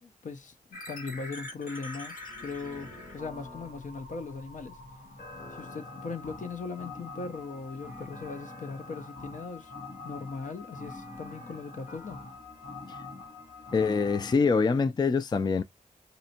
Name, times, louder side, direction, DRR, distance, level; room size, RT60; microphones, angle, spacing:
voice 1, 0.0-2.1 2.4-4.8 5.5-9.7 10.0-12.2, left 4 dB, 60° left, 0.7 m, -39 dB
sound 1, 0.7-14.3, left 2 dB, 75° left, 1.5 m, -44 dB
voice 2, 13.7-15.6, left 4 dB, 30° left, 0.3 m, -25 dB
4.2 x 2.6 x 2.8 m
cardioid pair, 75°, 15 cm